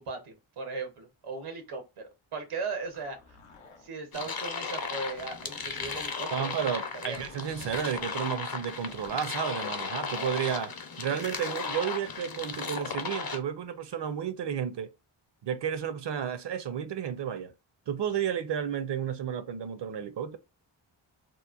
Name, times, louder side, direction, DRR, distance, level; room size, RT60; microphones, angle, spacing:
voice 1, 0.0-2.0 2.3-3.2 3.8-7.3, right 3 dB, 90° right, 0.9 m, -38 dB
Zipper (clothing), 2.7-4.3 5.1-6.3 7.1-8.2 8.8-9.2, left 3 dB, 80° left, 0.8 m, -52 dB
sound 1, 4.1-13.4, left 5 dB, 45° left, 0.7 m, -36 dB
voice 2, 6.3-10.7 11.0-14.9 15.4-17.5 17.9-20.4, right 8 dB, 60° right, 0.6 m, -32 dB
3.0 x 2.1 x 2.4 m
cardioid pair, 60°, 49 cm